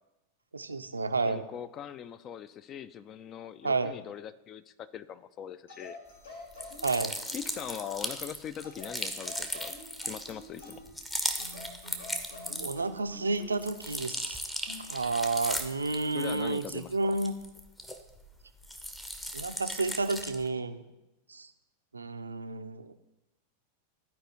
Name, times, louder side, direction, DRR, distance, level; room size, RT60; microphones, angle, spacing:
voice 1, 0.5-1.4 3.6-4.0 6.8-7.1 12.6-14.4 14.9-17.3 19.3-20.8 21.3-21.5 21.9-22.9, right 3 dB, 80° right, 9 dB, 0.4 m, -31 dB
voice 2, 1.2-6.0 7.3-9.7 10.0-10.8 16.1-17.1, left 9 dB, 30° left, 14 dB, 0.4 m, -41 dB
sound 1, 5.7-7.9 8.6-11.0 11.4-13.6 14.7-14.9, left 2 dB, 70° left, 2.1 m, -47 dB
sound 2, 6.5-13.0 13.4-18.3 18.6-20.5, equal, 10° left, 0.7 m, -37 dB
14.0 x 4.8 x 3.0 m, 0.94 s
figure-of-eight pair, 90°, 0 cm